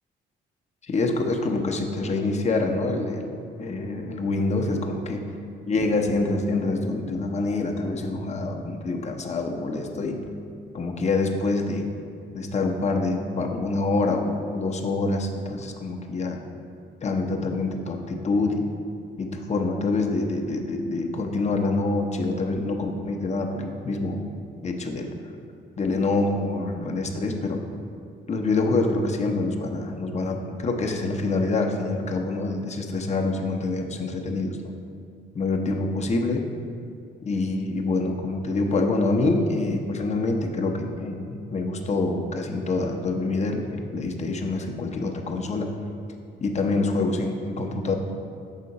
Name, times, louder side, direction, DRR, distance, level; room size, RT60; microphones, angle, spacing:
voice 1, 0.8-5.2 5.7-10.2 10.7-11.8 12.3-16.4 17.0-18.7 19.2-24.2 24.6-25.2 25.8-27.6 28.3-34.7 35.3-36.5 37.2-45.7 46.4-47.9, left 3 dB, 35° left, 3 dB, 0.7 m, -26 dB
5.7 x 3.7 x 5.3 m, 2.4 s
cardioid pair, 90°, 20 cm